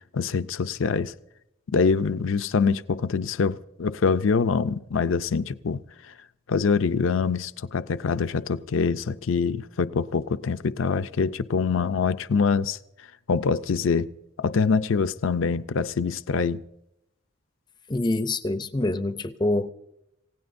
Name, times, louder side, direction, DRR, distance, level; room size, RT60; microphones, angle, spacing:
voice 1, 0.1-1.1 1.7-6.1 6.5-12.8 13.3-14.1 14.4-16.6, left 5 dB, 75° left, 0.5 m, -24 dB
voice 2, 17.9-19.7, left 2 dB, 20° left, 0.5 m, -26 dB
28.0 x 16.5 x 2.6 m
head